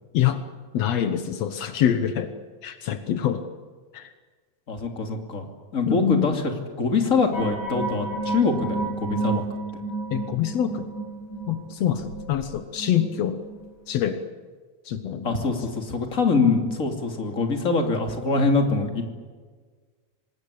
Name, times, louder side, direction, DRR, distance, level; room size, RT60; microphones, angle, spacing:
voice 1, 0.7-2.3 2.6-3.4 3.9-4.1 5.8-6.4 10.1-10.9 11.5-13.4 13.9-14.2 14.8-15.3, left 10 dB, 90° left, 9 dB, 1.4 m, -25 dB
voice 2, 4.7-5.4 5.7-6.4 6.8-9.5 15.2-19.1, left 4 dB, 25° left, 3 dB, 2.4 m, -24 dB
sound 1, 7.3-13.7 13.9-14.0, right 3 dB, 55° left, 6.9 m, -31 dB
25.5 x 20.0 x 8.5 m, 1.5 s
omnidirectional pair, 4.6 m